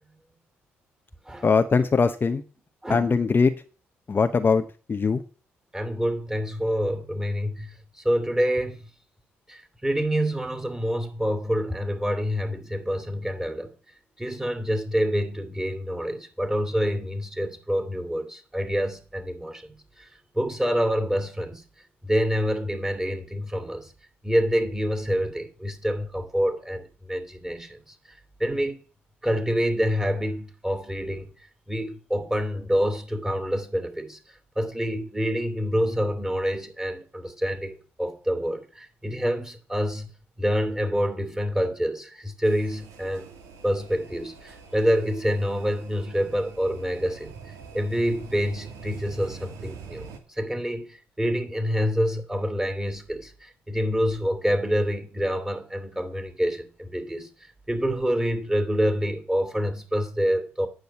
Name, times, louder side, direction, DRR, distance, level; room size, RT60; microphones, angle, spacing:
voice 1, 1.4-2.4 2.9-3.5 4.1-4.6 4.9-5.2, left 5 dB, 35° left, 0.8 m, -21 dB
voice 2, 2.8-3.4 5.7-8.8 9.5-13.7 14.2-20.1 20.3-21.6 22.0-23.9 24.2-27.8 28.4-28.8 29.2-31.3 31.7-34.2 34.6-40.1 40.4-43.3 43.6-47.3 47.7-57.3 57.7-60.7, equal, 10° right, 2.9 m, -27 dB
sound 1, 42.4-50.2, right 5 dB, 70° right, 2.0 m, -44 dB
9.3 x 6.5 x 8.1 m
hypercardioid pair, 50°, 6 cm